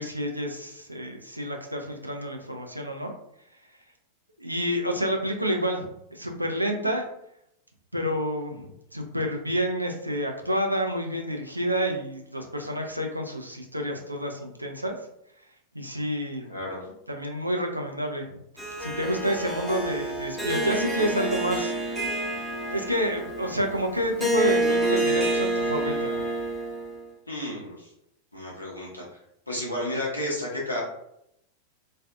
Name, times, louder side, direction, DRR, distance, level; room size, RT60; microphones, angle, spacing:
voice 1, 0.0-3.1 4.4-5.9 6.1-7.1 7.9-14.9 15.7-16.6 17.1-18.3 18.8-21.7 22.7-26.2, equal, 85° right, 3 dB, 0.4 m, -29 dB
voice 2, 16.5-16.8 27.3-27.9 28.3-29.0 29.5-30.8, left 1 dB, 85° left, -4 dB, 0.7 m, -32 dB
Harp, 18.6-27.0, right 2 dB, 5° right, 0.7 m, -28 dB
2.5 x 2.4 x 2.3 m, 0.78 s
figure-of-eight pair, 90°, 0 cm